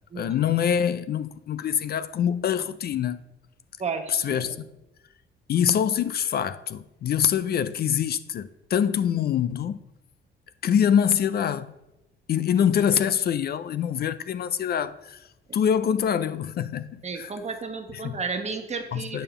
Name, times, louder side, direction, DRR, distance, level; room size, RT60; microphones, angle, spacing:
voice 1, 0.2-3.2 4.1-4.6 5.5-9.8 10.6-11.7 12.3-15.2 15.5-17.3 17.9-18.2 18.9-19.2, left 8 dB, 50° left, 0.4 m, -25 dB
voice 2, 3.8-4.5 17.0-19.2, right 5 dB, 35° right, 1.1 m, -33 dB
9.0 x 3.6 x 6.9 m
cardioid pair, 90°, 20 cm